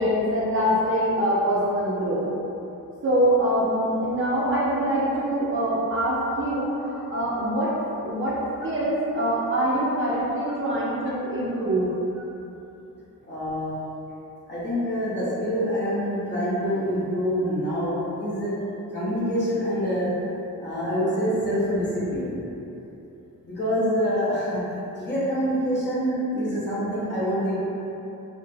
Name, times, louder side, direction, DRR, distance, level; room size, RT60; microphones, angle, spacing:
voice 1, 0.0-2.3 3.0-7.7 8.0-8.4 8.6-11.9, equal, 40° right, -8 dB, 0.4 m, -24 dB
voice 2, 13.3-13.7 14.5-18.5 18.9-20.1 20.6-22.3 23.4-24.6 24.9-27.5, equal, 30° left, -10 dB, 0.7 m, -26 dB
2.3 x 2.1 x 3.1 m, 2.9 s
wide cardioid pair, 155°, 34 cm